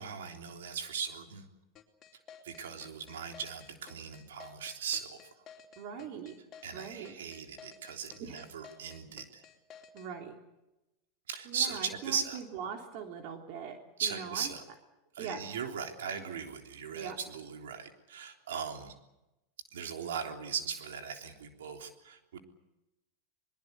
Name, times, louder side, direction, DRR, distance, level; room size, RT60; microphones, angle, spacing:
voice 1, 0.0-1.5 2.4-5.2 6.6-9.4 11.3-12.4 14.0-14.6 15.2-18.9 19.7-22.4, right 7 dB, 90° right, 5 dB, 3.5 m, -38 dB
sound 1, 1.8-10.1, left 7 dB, 35° left, 3.9 m, -53 dB
voice 2, 5.8-6.4 6.7-7.1 8.2-8.5 9.9-10.4 11.4-14.5 15.2-15.4 16.9-17.2, right 7 dB, 55° right, 4 dB, 3.2 m, -41 dB
22.5 x 22.0 x 8.2 m, 0.95 s
supercardioid pair, 125°, 0 cm